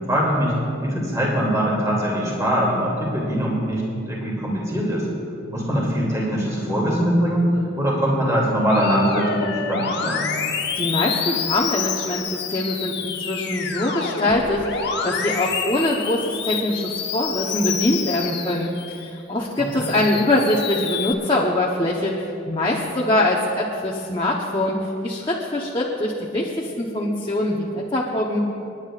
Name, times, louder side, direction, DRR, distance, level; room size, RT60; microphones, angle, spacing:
voice 1, 0.1-0.5 0.8-5.1 5.5-10.3 19.6-19.9, equal, 15° right, -4 dB, 2.6 m, -22 dB
Musical instrument, 8.7-19.1 19.6-21.1, left 6 dB, 55° left, 0.9 m, -28 dB
voice 2, 10.7-28.4, left 1 dB, 25° left, -3 dB, 0.9 m, -23 dB
29.0 x 10.5 x 2.5 m, 2.6 s
head